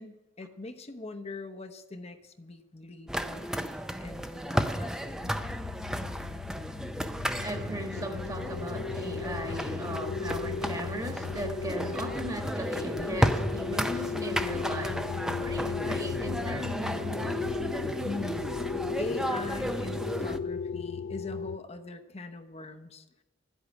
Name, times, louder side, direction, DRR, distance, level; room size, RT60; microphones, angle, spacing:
voice 1, 0.0-5.3 18.0-18.4 19.0-23.1, left 2 dB, 35° left, 0.9 m, -42 dB
sound 1, 3.1-20.4, equal, 5° right, 0.5 m, -33 dB
sound 2, 5.2-21.6, left 5 dB, 85° left, 0.4 m, -36 dB
voice 2, 7.4-17.4, right 1 dB, 20° right, 1.5 m, -38 dB
12.5 x 8.2 x 9.6 m
head